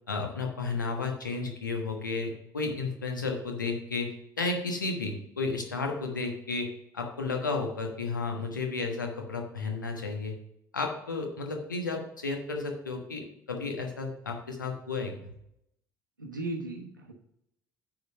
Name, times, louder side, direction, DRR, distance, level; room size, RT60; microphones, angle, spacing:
voice 1, 0.1-10.4 10.7-15.1, left 3 dB, 85° left, 3 dB, 1.2 m, -33 dB
voice 2, 16.2-17.1, right 2 dB, 90° right, 0 dB, 1.0 m, -36 dB
9.2 x 3.9 x 6.4 m, 0.76 s
figure-of-eight pair, 60°, 10 cm